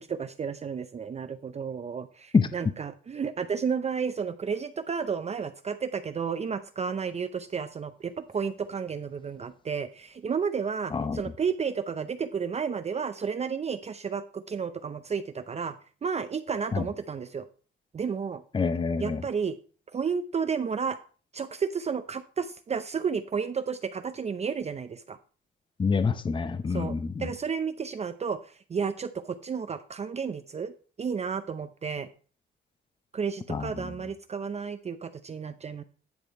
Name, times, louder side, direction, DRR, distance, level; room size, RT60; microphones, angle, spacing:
voice 1, 0.0-15.7 16.0-17.4 17.9-18.4 19.0-19.6 19.9-21.0 21.3-25.2 26.7-30.7 31.0-32.1 33.1-35.8, right 6 dB, 35° right, 0.6 m, -32 dB
voice 2, 18.5-19.2 25.8-27.3 33.5-33.9, left 5 dB, 25° left, 0.7 m, -26 dB
10.0 x 5.0 x 4.6 m
cardioid pair, 90°, 20 cm